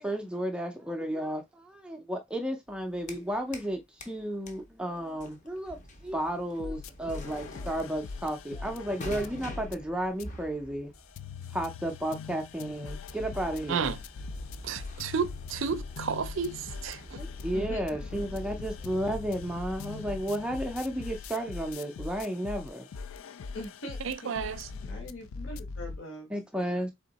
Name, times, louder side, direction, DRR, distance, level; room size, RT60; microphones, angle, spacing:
voice 1, 0.0-10.9 11.5-13.9 17.2-22.9 26.3-26.9, right 1 dB, 5° right, 0.4 m, -33 dB
sound 1, 2.7-3.7 4.0-21.5, equal, 35° left, 0.7 m, -47 dB
sound 2, 6.6-9.7 10.2-10.3 10.9-26.0, left 4 dB, 75° left, 0.4 m, -41 dB
voice 2, 14.6-17.2 24.0-24.7, right 6 dB, 65° right, 0.4 m, -32 dB
voice 3, 17.5-17.8 23.5-24.3 24.8-26.3, left 1 dB, 60° left, 1.2 m, -41 dB
3.6 x 3.4 x 4.0 m
head